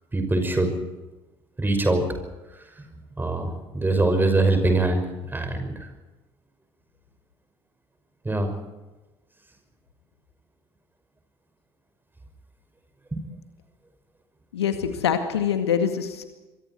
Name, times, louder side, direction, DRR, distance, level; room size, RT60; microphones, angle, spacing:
voice 1, 0.1-0.8 1.6-2.2 2.4-5.9 8.2-8.5 13.1-13.2, right 2 dB, 15° right, 6 dB, 5.9 m, -24 dB
voice 2, 14.5-16.2, left 8 dB, 80° left, 8 dB, 2.0 m, -24 dB
26.5 x 23.0 x 4.7 m, 1.1 s
figure-of-eight pair, 60°, 14 cm